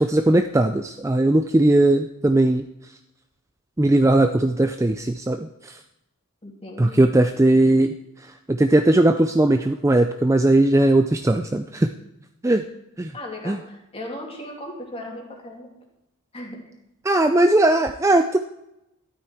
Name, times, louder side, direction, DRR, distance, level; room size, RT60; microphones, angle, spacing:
voice 1, 0.0-2.6 3.8-5.7 6.8-7.9 8.5-11.9 12.4-12.6 13.0-13.1 13.5-13.6 17.0-18.4, right 1 dB, 15° right, 7 dB, 0.4 m, -18 dB
voice 2, 6.4-7.1 13.1-15.7 16.3-16.6, left 1 dB, 25° left, 0 dB, 2.7 m, -36 dB
13.0 x 12.0 x 4.5 m, 0.86 s
head